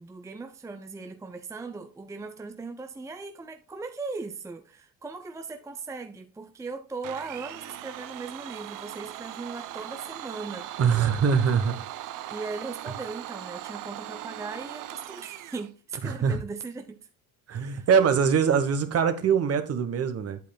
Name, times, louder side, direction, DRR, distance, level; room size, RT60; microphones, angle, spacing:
voice 1, 0.0-10.8 12.3-17.1 17.5-17.9, right 4 dB, 10° right, 0.6 m, -38 dB
Domestic sounds home sounds, 7.0-15.7, right 13 dB, 65° right, 0.7 m, -39 dB
voice 2, 10.8-11.8 16.0-16.4 17.5-20.4, right 6 dB, 45° right, 1.2 m, -23 dB
8.5 x 8.3 x 2.3 m
cardioid pair, 100°, 35 cm